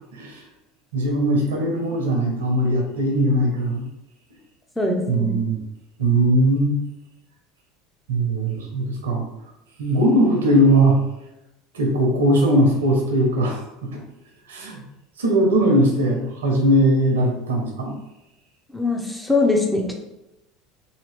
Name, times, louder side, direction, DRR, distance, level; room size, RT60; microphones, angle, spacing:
voice 1, 0.1-0.4 0.9-3.8 5.1-5.6 6.0-6.8 8.1-9.2 9.8-11.0 11.7-13.9 14.5-14.8 15.2-17.9, right 1 dB, 75° right, 1 dB, 0.7 m, -19 dB
voice 2, 4.8-5.3 18.7-19.9, left 3 dB, ahead, 1 dB, 0.7 m, -22 dB
2.8 x 2.7 x 3.4 m, 0.92 s
figure-of-eight pair, 75°, 0 cm